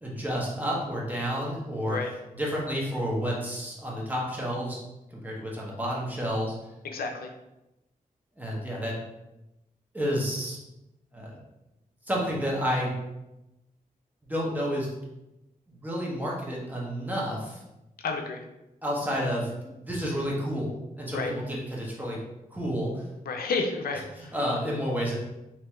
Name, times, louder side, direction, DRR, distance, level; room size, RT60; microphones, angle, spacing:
voice 1, 0.0-2.0 2.4-4.8 5.1-6.5 8.4-8.9 9.9-10.6 11.1-11.3 12.1-12.9 14.2-14.9 15.8-17.6 18.8-22.2 22.5-23.1 24.2-25.2, equal, 10° right, -4 dB, 1.1 m, -30 dB
voice 2, 6.8-7.3 18.0-18.4 21.1-21.3 23.3-24.3, left 4 dB, 85° left, 4 dB, 0.5 m, -31 dB
3.4 x 3.0 x 3.0 m, 0.94 s
cardioid pair, 75°, 15 cm